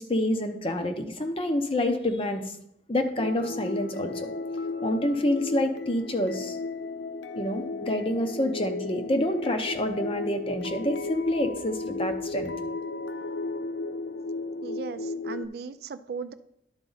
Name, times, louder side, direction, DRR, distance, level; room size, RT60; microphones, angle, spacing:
voice 1, 0.0-2.4 2.9-4.3 4.8-6.6 7.3-12.5, left 1 dB, 30° left, 6 dB, 0.7 m, -27 dB
sound 1, 3.2-15.5, left 3 dB, 85° left, 0.4 m, -34 dB
voice 2, 14.6-16.3, right 5 dB, 60° right, 13 dB, 0.4 m, -37 dB
11.5 x 4.1 x 3.9 m, 0.77 s
head